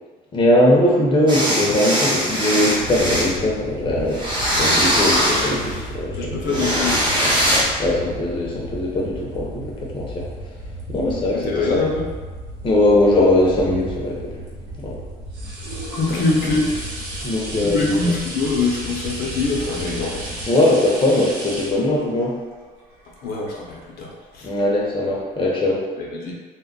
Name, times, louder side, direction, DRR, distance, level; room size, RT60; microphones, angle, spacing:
voice 1, 0.3-4.2 4.6-6.6 7.8-10.3 10.9-11.8 12.6-14.4 14.8-15.0 16.1-16.2 17.2-17.9 20.5-22.4 24.4-25.8, left 1 dB, 30° left, -3 dB, 0.6 m, -20 dB
sound 1, 1.3-3.3 4.1-5.8 6.5-7.6, equal, 25° right, 0.8 m, -21 dB
sound 2, 2.8-20.5, right 1 dB, 55° right, 0.9 m, -35 dB
voice 2, 6.2-7.3 11.4-12.1 15.9-16.9 17.6-20.4 23.2-24.5 26.0-26.3, left 3 dB, 70° left, -2 dB, 0.6 m, -24 dB
sound 3, 14.7-24.0 24.6-24.7, right 1 dB, 80° right, 0.8 m, -34 dB
2.2 x 2.1 x 3.7 m, 1.4 s
cardioid pair, 110°, 17 cm